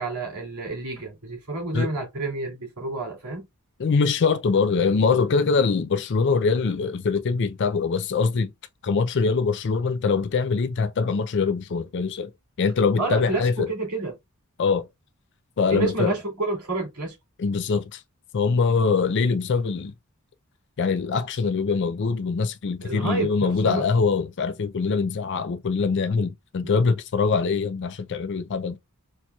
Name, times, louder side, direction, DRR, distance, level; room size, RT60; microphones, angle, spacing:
voice 1, 0.0-3.4 13.0-14.1 15.7-17.2 22.8-23.8 26.6-26.7, right 3 dB, 85° right, 2.5 m, -29 dB
voice 2, 3.8-8.5 8.8-12.3 12.6-13.7 14.6-14.8 15.6-16.2 17.4-18.0 18.3-19.9 20.8-28.8, left 5 dB, 50° left, 0.4 m, -23 dB
4.4 x 2.8 x 2.3 m
head